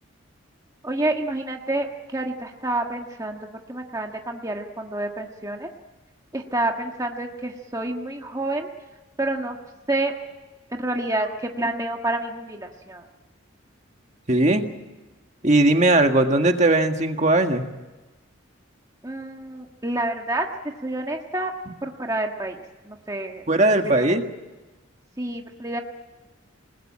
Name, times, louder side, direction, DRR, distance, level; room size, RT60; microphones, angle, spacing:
voice 1, 0.8-5.7 6.3-8.7 9.2-9.6 9.9-10.1 10.7-13.0 19.0-20.5 20.8-21.5 21.8-23.5 23.8-24.2 25.2-25.8, right 2 dB, 15° right, 2 dB, 1.5 m, -28 dB
voice 2, 14.3-14.6 15.4-17.6 23.5-24.2, right 2 dB, 35° right, 5 dB, 1.7 m, -18 dB
28.5 x 20.0 x 8.8 m, 1.2 s
head